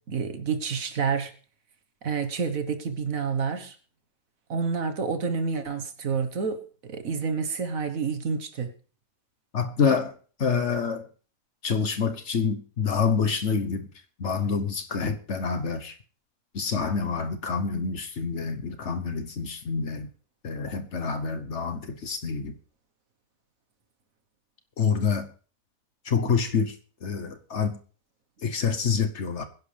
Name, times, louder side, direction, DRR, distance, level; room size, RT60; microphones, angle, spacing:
voice 1, 0.1-1.3 2.0-3.7 4.5-8.7, right 5 dB, 65° right, 1.7 m, -29 dB
voice 2, 9.5-10.1 10.4-11.0 11.6-13.9 14.2-15.9 16.5-20.1 20.4-22.5 24.8-25.3 26.1-26.7 27.0-27.8 28.4-29.4, left 5 dB, 55° left, 1.3 m, -27 dB
23.0 x 10.5 x 3.4 m
omnidirectional pair, 1.5 m